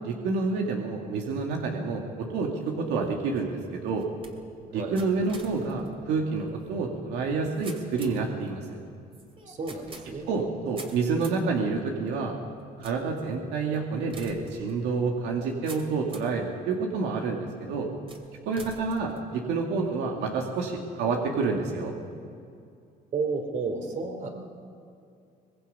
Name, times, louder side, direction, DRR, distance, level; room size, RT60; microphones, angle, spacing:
voice 1, 0.0-4.1 4.7-8.8 10.3-12.3 12.8-17.9 18.5-21.9, right 4 dB, 85° right, 1 dB, 2.2 m, -28 dB
sound 1, 2.8-16.4 17.0-17.5 18.1-19.9, right 3 dB, 35° right, 2.9 m, -49 dB
voice 2, 9.4-10.3 23.1-24.3, right 4 dB, 50° right, 4 dB, 3.4 m, -32 dB
24.0 x 20.5 x 5.6 m, 2.4 s
cardioid pair, 110°, 17 cm